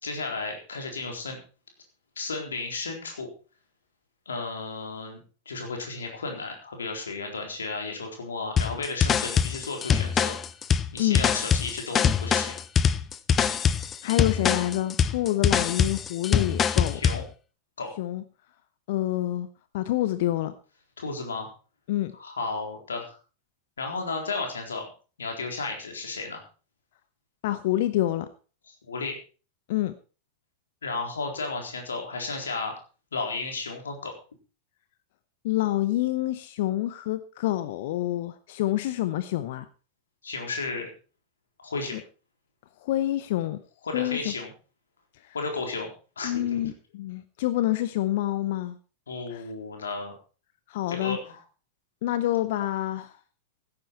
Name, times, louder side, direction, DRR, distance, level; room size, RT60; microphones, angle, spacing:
voice 1, 0.0-1.4 2.2-3.3 4.3-5.2 5.5-10.3 10.9-12.6 16.9-17.2 17.8-17.9 21.0-21.5 22.1-23.2 23.8-24.9 25.2-26.4 28.9-29.2 30.8-32.7 33.1-34.1 40.2-40.9 41.6-42.0 43.8-44.5 45.3-45.9 46.2-46.6 49.1-50.1 50.9-51.4, left 3 dB, 70° left, 3 dB, 4.0 m, -33 dB
sound 1, 8.6-17.2, left 7 dB, 25° left, 0.8 m, -24 dB
voice 2, 14.0-17.0 18.0-18.2 18.9-19.5 19.7-20.5 21.9-22.1 27.4-28.3 29.7-29.9 35.4-39.7 41.9-42.0 42.8-43.6 43.9-44.3 45.2-45.3 46.2-48.8 49.3-49.4 50.7-51.2 52.0-53.2, left 14 dB, 55° left, 13 dB, 0.8 m, -27 dB
16.0 x 9.8 x 4.6 m, 0.35 s
figure-of-eight pair, 90°, 0 cm